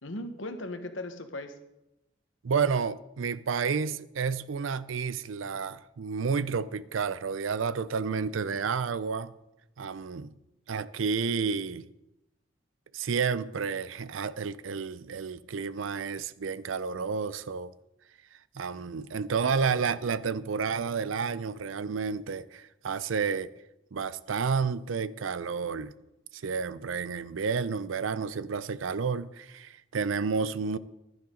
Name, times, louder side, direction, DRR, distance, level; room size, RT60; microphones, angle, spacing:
voice 1, 0.0-1.6 19.1-19.5 30.6-30.8, left 1 dB, 70° left, 1.3 m, -39 dB
voice 2, 2.4-9.3 9.8-10.3 10.7-11.9 12.9-17.7 18.5-23.5 23.9-25.9 26.3-30.8, right 5 dB, 80° right, 0.5 m, -30 dB
15.0 x 11.5 x 3.8 m
head